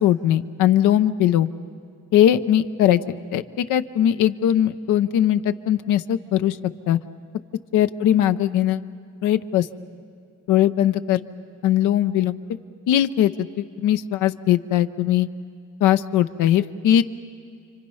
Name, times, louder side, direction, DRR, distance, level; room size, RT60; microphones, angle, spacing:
voice 1, 0.0-1.5 2.1-3.0 3.3-6.6 6.9-7.0 7.7-8.8 9.2-9.7 10.5-11.2 11.6-12.4 12.9-13.3 13.6-15.3 15.8-17.0, left 11 dB, 90° left, 11 dB, 0.8 m, -19 dB
29.5 x 24.5 x 5.6 m, 2.3 s
cardioid pair, 90°, 30 cm